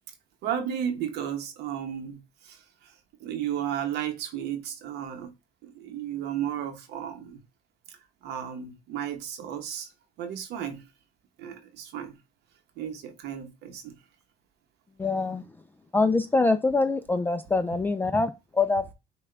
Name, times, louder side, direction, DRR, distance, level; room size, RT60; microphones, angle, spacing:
voice 1, 0.4-2.9 3.2-5.3 5.6-7.4 8.2-9.9 10.2-10.8 11.4-12.2 12.8-13.9, right 9 dB, 85° right, 0.9 m, -34 dB
voice 2, 15.0-15.4 15.9-18.9, left 3 dB, 10° left, 0.3 m, -24 dB
5.9 x 2.3 x 3.2 m
cardioid pair, 110°, 17 cm